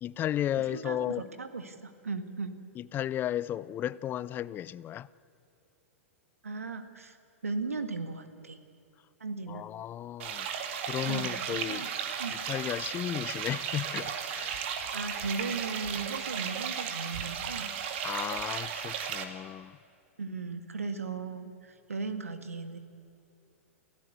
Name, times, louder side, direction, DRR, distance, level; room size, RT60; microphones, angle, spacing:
voice 1, 0.0-1.2 2.8-5.1 9.5-10.5 10.9-11.8 12.5-14.5 18.0-19.8, left 11 dB, 25° left, 0.6 m, -34 dB
voice 2, 0.6-2.6 6.4-7.2 7.4-8.6 9.2-9.6 11.0-11.9 12.2-12.4 14.9-17.7 18.0-18.2 20.2-22.8, right 4 dB, 85° right, 1.7 m, -37 dB
sound 1, 10.2-19.2, right 7 dB, 55° right, 2.2 m, -35 dB
29.0 x 16.0 x 8.2 m
hypercardioid pair, 105°, 8 cm